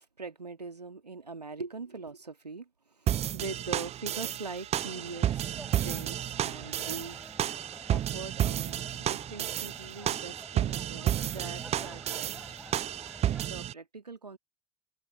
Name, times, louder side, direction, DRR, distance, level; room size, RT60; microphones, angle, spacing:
voice 1, 0.0-7.2 7.9-12.4 13.5-14.4, right 4 dB, 85° right, 2.2 m, -42 dB
sound 1, 3.1-13.7, right 11 dB, 30° right, 0.6 m, -32 dB
sound 2, 4.7-13.5, right 1 dB, 5° right, 5.1 m, -49 dB
open air
figure-of-eight pair, 65°, 20 cm